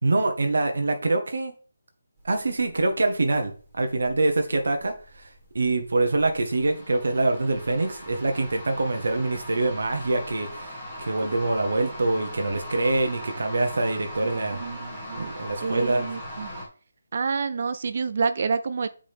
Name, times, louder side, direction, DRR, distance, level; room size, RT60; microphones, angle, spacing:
voice 1, 0.0-1.5 2.2-5.3 5.5-14.6 15.2-16.1, right 2 dB, 65° right, 5 dB, 1.2 m, -25 dB
sound 1, 2.2-16.7, equal, ahead, 1.7 m, -40 dB
voice 2, 14.5-15.3 15.6-16.5 17.1-18.9, right 5 dB, 35° right, 12 dB, 0.4 m, -28 dB
7.6 x 5.1 x 3.5 m, 0.39 s
hypercardioid pair, 180°, 0 cm